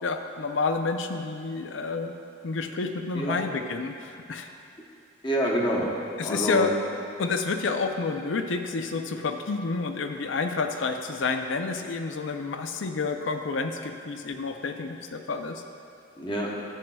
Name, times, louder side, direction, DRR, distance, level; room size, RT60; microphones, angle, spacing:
voice 1, 0.0-2.1 2.4-4.5 6.2-6.7 7.2-15.6, left 4 dB, 75° left, 6 dB, 0.5 m, -29 dB
voice 2, 5.2-6.7 16.2-16.5, right 1 dB, 25° left, -2 dB, 0.9 m, -27 dB
11.5 x 7.5 x 2.3 m, 2.6 s
head